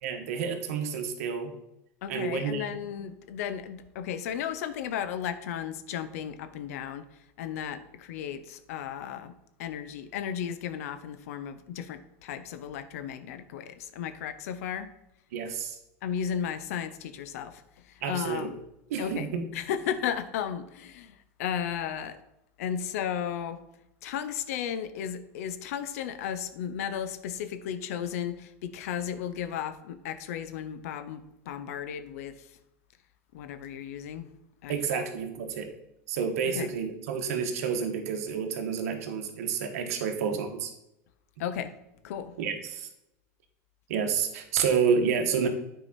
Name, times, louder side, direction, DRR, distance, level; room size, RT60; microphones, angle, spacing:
voice 1, 0.0-1.5 2.1-2.7 15.3-15.8 18.0-18.5 18.9-19.5 34.7-35.7 36.1-40.7 42.4-42.9 43.9-45.5, right 6 dB, 80° right, 5 dB, 1.3 m, -29 dB
voice 2, 2.0-7.0 7.4-9.3 9.6-14.9 16.0-18.6 19.0-22.2 22.6-23.6 24.0-32.5 33.3-34.3 34.6-35.1 36.4-36.7 41.4-41.7 42.0-42.3, left 9 dB, 80° left, 12 dB, 0.8 m, -34 dB
9.1 x 5.0 x 4.3 m, 0.87 s
supercardioid pair, 120°, 8 cm